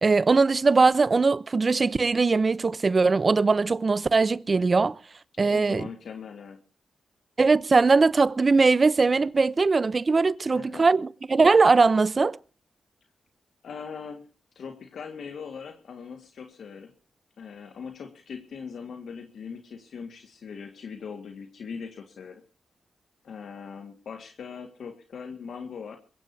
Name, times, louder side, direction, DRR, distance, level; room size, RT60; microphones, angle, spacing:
voice 1, 0.0-5.0 5.4-5.9 7.4-12.4, right 4 dB, 45° right, 0.8 m, -21 dB
voice 2, 5.3-6.6 10.4-10.9 13.6-14.3 14.6-16.9 17.4-22.4 23.2-26.0, left 6 dB, 75° left, 1.8 m, -40 dB
22.0 x 16.5 x 2.8 m
cardioid pair, 55°, 0 cm